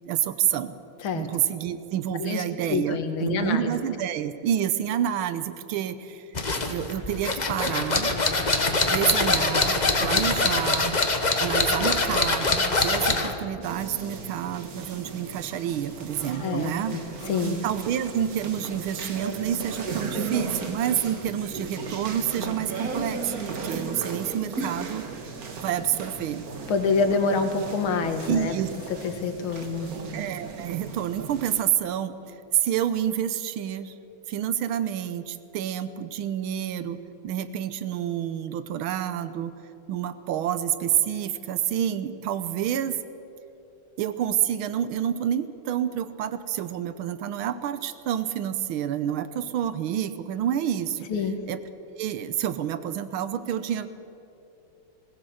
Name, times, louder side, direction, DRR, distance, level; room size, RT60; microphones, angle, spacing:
voice 1, 0.1-0.7 1.1-6.3 6.7-8.1 8.9-11.0 11.4-17.0 17.6-25.1 25.6-26.4 28.3-28.7 30.1-33.9 34.3-39.5 39.9-43.0 44.0-51.1 51.5-51.6 52.0-53.9, right 10 dB, 90° right, 13 dB, 1.7 m, -28 dB
voice 2, 2.2-3.7 16.4-17.0 17.3-17.6 26.7-28.6 29.0-29.9 51.1-51.4, left 4 dB, 85° left, 7 dB, 2.1 m, -26 dB
sound 1, 6.3-13.4, left 3 dB, 25° left, 1.2 m, -24 dB
sound 2, 13.6-31.6, right 4 dB, 50° right, 1.8 m, -36 dB
21.0 x 16.0 x 7.8 m, 2.9 s
omnidirectional pair, 2.2 m